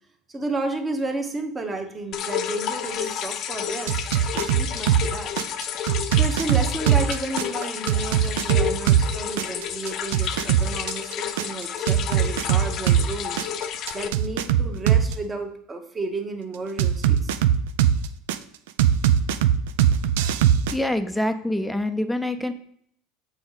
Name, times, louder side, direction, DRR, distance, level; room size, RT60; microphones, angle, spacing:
voice 1, 0.3-5.3 6.1-13.4 13.9-17.4 21.2-21.3, right 2 dB, 20° right, 5 dB, 1.1 m, -32 dB
sound 1, 2.1-14.1, left 8 dB, 50° left, 0.6 m, -31 dB
sound 2, 3.0-4.5, left 5 dB, 45° right, 1.7 m, -43 dB
sound 3, 3.9-5.1 5.4-9.1 9.4-13.1 13.4-15.1 16.8-18.4 18.8-20.7, right 10 dB, 85° right, 0.4 m, -20 dB
voice 2, 20.7-22.5, left 1 dB, ahead, 6 dB, 0.5 m, -25 dB
6.9 x 4.8 x 4.0 m, 0.66 s
supercardioid pair, 115°, 0 cm